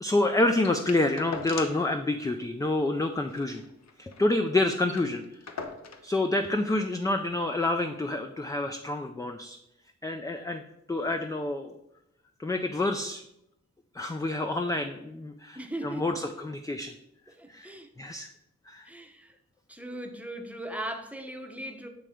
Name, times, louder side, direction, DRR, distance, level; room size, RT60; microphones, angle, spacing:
voice 1, 0.0-3.6 4.0-5.2 6.0-9.6 10.0-10.6 10.9-11.7 12.4-13.2 13.9-16.9 17.5-17.7 18.0-18.3 18.7-18.9, left 2 dB, 10° left, 6 dB, 0.4 m, -28 dB
sound 1, 0.6-1.9 2.2-2.3 2.6-2.8 3.2-4.3 4.6-4.7 4.9-6.1 7.0-7.1, left 5 dB, 65° left, 0.8 m, -41 dB
voice 2, 15.6-16.2 17.4-17.9 18.8-19.3 19.7-21.9, right 1 dB, 5° right, 4 dB, 0.8 m, -38 dB
7.6 x 3.3 x 4.9 m, 0.81 s
wide cardioid pair, 90°, 29 cm